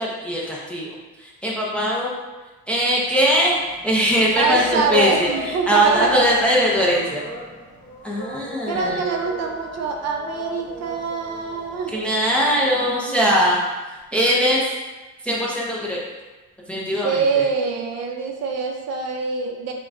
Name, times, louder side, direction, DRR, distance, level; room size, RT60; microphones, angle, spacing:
voice 1, 0.0-2.1 2.7-3.6 3.8-7.2 8.0-9.1 11.9-14.7 15.2-16.0 16.7-17.5, equal, 5° left, -4 dB, 0.4 m, -21 dB
sound 1, 2.8-12.9, left 1 dB, 25° left, 0.8 m, -38 dB
voice 2, 4.4-6.3 8.7-11.9 17.0-19.7, right 4 dB, 50° right, 2 dB, 0.5 m, -24 dB
Keyboard (musical), 8.7-10.7 13.9-14.1, left 3 dB, 15° right, 1.0 m, -44 dB
5.8 x 2.1 x 2.5 m, 1.2 s
cardioid pair, 145°, 33 cm